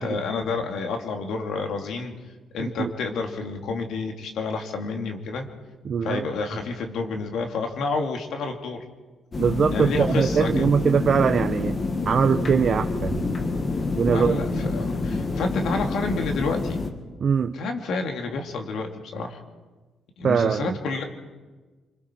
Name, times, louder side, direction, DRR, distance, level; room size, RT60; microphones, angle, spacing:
voice 1, 0.0-2.1 2.5-5.5 6.0-8.8 9.7-10.7 14.1-16.9 17.5-19.4 20.2-21.0, left 4 dB, 75° left, 3 dB, 2.4 m, -29 dB
voice 2, 5.8-6.3 9.4-11.8 12.1-13.3 13.9-14.7 17.2-17.5 20.2-20.8, right 6 dB, 50° right, 7 dB, 0.8 m, -22 dB
sound 1, 9.3-16.9, left 3 dB, 35° left, 2.0 m, -27 dB
27.5 x 22.0 x 4.5 m, 1.3 s
cardioid pair, 90°, 0 cm